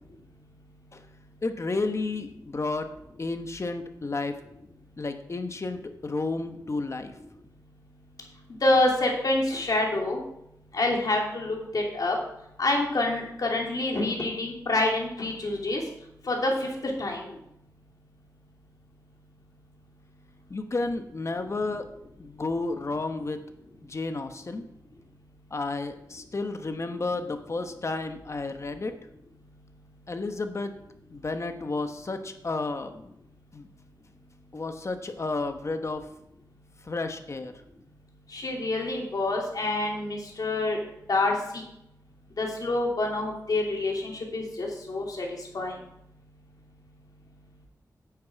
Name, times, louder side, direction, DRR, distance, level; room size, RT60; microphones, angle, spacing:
voice 1, 1.4-2.9 3.2-4.4 5.0-7.2 20.5-21.9 22.2-23.4 23.8-24.6 25.5-28.9 30.1-30.7 31.1-33.1 33.5-33.7 34.5-36.1 36.8-37.5, left 3 dB, 45° left, 7 dB, 1.1 m, -31 dB
voice 2, 8.6-10.2 10.7-12.2 12.6-15.8 16.2-17.4 38.3-40.8 41.1-41.3 42.4-45.3 45.5-45.7, left 2 dB, 60° left, 0 dB, 2.8 m, -27 dB
9.6 x 8.7 x 4.7 m, 0.80 s
wide cardioid pair, 90°, 7 cm